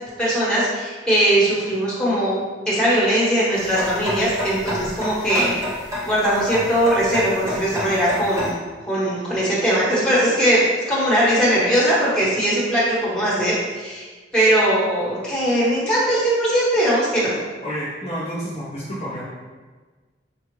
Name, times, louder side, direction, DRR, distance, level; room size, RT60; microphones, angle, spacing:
voice 1, 0.2-2.4 2.7-5.5 6.0-8.6 8.9-14.1 14.3-17.3, right 1 dB, 5° left, -8 dB, 1.1 m, -20 dB
sound 1, 3.5-8.5, left 1 dB, 15° right, 0.7 m, -29 dB
voice 2, 17.6-19.3, equal, 35° left, -7 dB, 0.6 m, -29 dB
5.2 x 2.4 x 3.0 m, 1.4 s
head